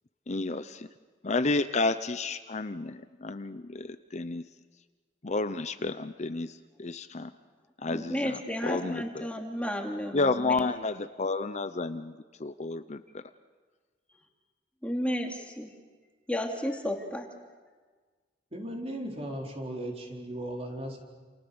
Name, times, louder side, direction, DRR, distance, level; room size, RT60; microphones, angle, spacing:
voice 1, 0.3-0.9 1.2-4.4 5.2-7.3 7.8-9.3 10.1-13.2, left 3 dB, 40° left, 11 dB, 0.8 m, -31 dB
voice 2, 7.8-10.7 14.8-15.7 16.3-17.3, equal, 5° left, 2 dB, 2.8 m, -33 dB
voice 3, 18.5-21.0, right 1 dB, 35° right, 0 dB, 4.5 m, -37 dB
29.5 x 29.0 x 7.1 m, 1.4 s
head